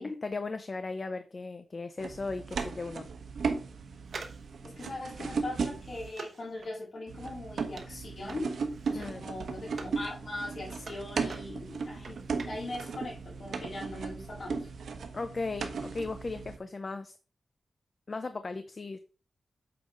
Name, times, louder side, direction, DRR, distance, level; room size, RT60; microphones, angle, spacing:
voice 1, 0.2-3.1 8.9-9.2 15.1-17.1 18.1-19.0, left 3 dB, 35° left, 9 dB, 0.5 m, -37 dB
sound 1, 2.0-6.1 7.1-16.6, right 5 dB, 85° right, 1.2 m, -36 dB
sound 2, 4.0-10.0 10.4-13.0 13.3-13.4, right 4 dB, 60° right, 1.0 m, -47 dB
voice 2, 4.6-8.5 8.9-14.7, left 2 dB, 50° left, -3 dB, 3.8 m, -40 dB
8.4 x 3.9 x 5.2 m, 0.35 s
wide cardioid pair, 180°, 0 cm